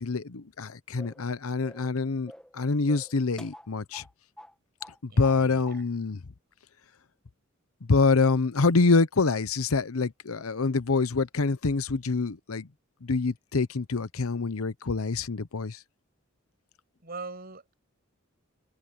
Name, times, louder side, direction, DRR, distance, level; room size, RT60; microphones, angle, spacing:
voice 1, 0.0-4.0 5.0-6.2 7.9-12.7 13.0-15.8, left 4 dB, 90° left, 0.8 m, -26 dB
sound 1, 1.0-1.3 1.6-1.9 2.3-2.6 2.9-4.1 4.4-4.5 4.8-5.4 5.6-5.8, equal, 5° left, 1.3 m, -48 dB
voice 2, 5.1-5.8 17.0-17.8, right 3 dB, 45° right, 7.1 m, -42 dB
head